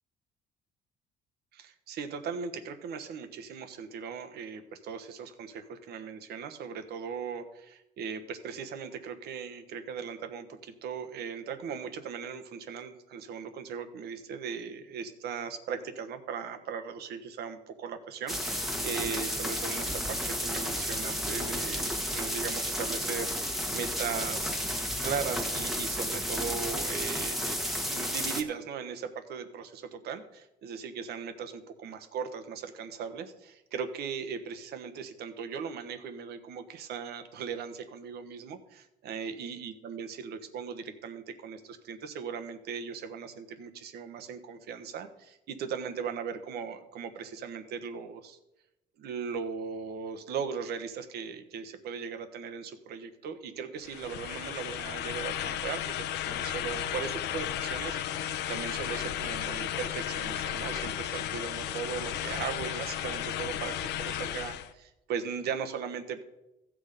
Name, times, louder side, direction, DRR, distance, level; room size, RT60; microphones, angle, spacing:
voice 1, 1.5-24.6 25.0-48.4 49.0-66.2, right 6 dB, 70° right, 8 dB, 1.2 m, -38 dB
sound 1, 18.3-28.4, equal, ahead, 1.4 m, -32 dB
sound 2, 53.8-64.7, left 10 dB, 80° left, 0.8 m, -34 dB
15.5 x 6.3 x 5.1 m, 0.91 s
cardioid pair, 110°, 17 cm